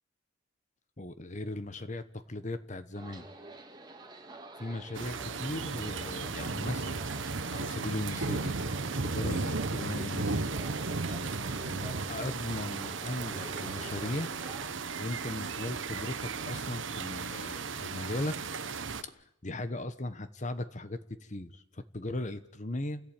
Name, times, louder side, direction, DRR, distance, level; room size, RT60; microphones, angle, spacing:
voice 1, 1.0-3.3 4.6-7.1 7.5-8.6 9.0-10.4 11.6-14.3 15.0-18.7 19.0-23.0, left 2 dB, 35° left, 12 dB, 1.2 m, -38 dB
sound 1, 2.9-14.7, right 1 dB, 20° right, 2.1 m, -48 dB
sound 2, 4.9-19.0, right 4 dB, 70° right, 1.1 m, -35 dB
29.0 x 16.0 x 9.1 m, 0.83 s
head